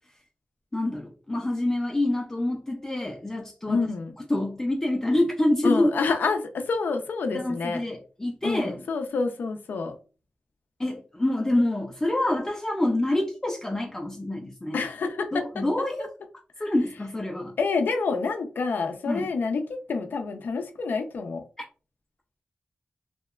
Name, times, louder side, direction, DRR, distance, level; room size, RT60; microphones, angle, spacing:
voice 1, 0.7-3.9 4.3-5.9 7.3-8.8 10.8-14.8 15.3-16.1 16.6-17.6 19.1-19.3, left 1 dB, 15° left, 0.3 m, -26 dB
voice 2, 3.7-4.1 5.6-7.8 8.4-10.0 14.7-15.6 16.6-16.7 17.6-19.6 19.9-21.4, left 4 dB, 90° left, 0.4 m, -28 dB
2.7 x 2.1 x 2.2 m
wide cardioid pair, 130°, 3 cm